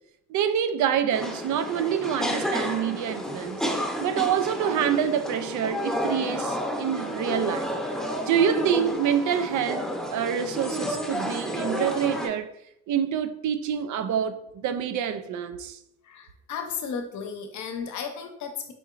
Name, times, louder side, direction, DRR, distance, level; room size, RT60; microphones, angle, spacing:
voice 1, 0.3-3.6 4.0-7.7 8.3-12.5 12.9-15.8, right 8 dB, 75° right, 0.5 m, -26 dB
sound 1, 1.1-12.3, equal, ahead, 0.7 m, -31 dB
voice 2, 16.0-18.7, left 6 dB, 70° left, 0.7 m, -34 dB
5.1 x 2.8 x 2.4 m
cardioid pair, 90°, 30 cm